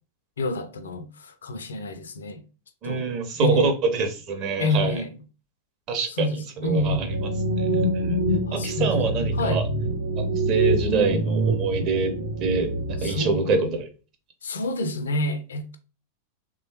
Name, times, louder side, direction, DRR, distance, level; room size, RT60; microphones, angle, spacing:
voice 1, 0.4-2.4 2.8-3.1 3.4-3.7 4.6-5.1 6.2-7.1 8.5-8.9 9.4-9.6 13.0-13.7 14.4-15.8, left 1 dB, 70° left, 0.4 m, -28 dB
voice 2, 2.8-5.0 5.9-6.3 6.6-7.1 7.6-8.2 8.5-9.7 10.2-12.1 12.4-13.9, right 4 dB, 40° right, 0.7 m, -25 dB
sound 1, 6.7-13.1, right 2 dB, 75° right, 0.6 m, -25 dB
3.1 x 2.1 x 2.8 m
figure-of-eight pair, 90°, 0 cm